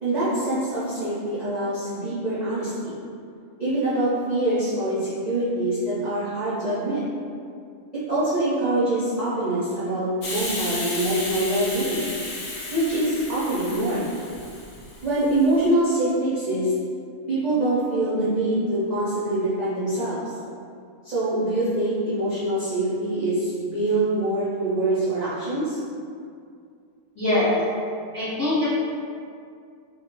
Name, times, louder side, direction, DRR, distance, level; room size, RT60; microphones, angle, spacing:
voice 1, 0.0-3.0 3.6-7.0 7.9-12.1 12.7-14.1 15.0-16.7 17.3-20.2 21.0-25.8, right 1 dB, 50° right, -13 dB, 0.5 m, -24 dB
Hiss, 10.2-15.6, left 2 dB, 65° left, 0.8 m, -33 dB
voice 2, 27.1-27.7 28.1-28.7, left 1 dB, 25° left, -13 dB, 0.6 m, -22 dB
2.2 x 2.1 x 2.9 m, 2.3 s
omnidirectional pair, 1.5 m